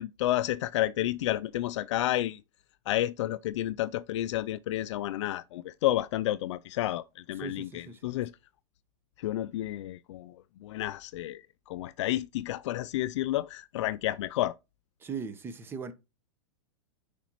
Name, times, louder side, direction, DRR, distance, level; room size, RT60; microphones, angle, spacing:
voice 1, 0.0-2.4 2.9-8.3 9.2-14.6, left 14 dB, 65° left, 0.4 m, -31 dB
voice 2, 7.4-8.1 15.0-15.9, right 5 dB, 15° right, 0.9 m, -39 dB
9.3 x 5.0 x 3.0 m
supercardioid pair, 150°, 17 cm